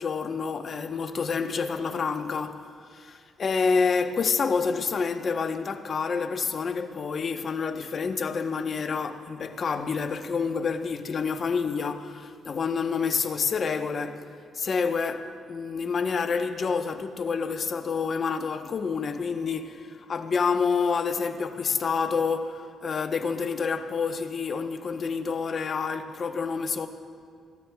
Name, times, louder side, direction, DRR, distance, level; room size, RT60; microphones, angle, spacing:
voice 1, 0.0-14.3 14.5-26.9, left 5 dB, 45° left, 0.9 m, -28 dB
27.5 x 15.0 x 2.3 m
cardioid pair, 90°, 0 cm